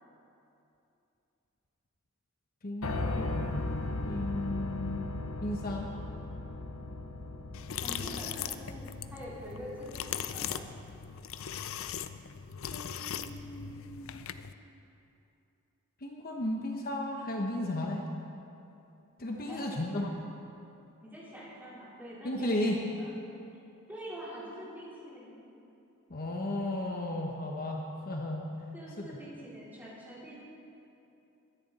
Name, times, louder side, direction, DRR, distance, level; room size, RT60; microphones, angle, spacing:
voice 1, 2.6-3.6 4.1-5.1 5.4-5.9 12.7-14.2 16.0-18.0 19.2-20.2 22.2-22.8 26.1-28.5 29.0-29.2, left 1 dB, 45° left, 0 dB, 1.0 m, -34 dB
Piano, 2.8-10.8, left 2 dB, 80° left, 1.0 m, -37 dB
sound 1, 7.5-14.5, left 8 dB, 65° left, 0.5 m, -39 dB
voice 2, 7.8-10.7 19.4-20.2 21.0-22.7 23.0-23.1 23.9-25.4 28.7-30.4, equal, 10° right, -8 dB, 4.1 m, -45 dB
22.0 x 10.5 x 4.2 m, 2.8 s
head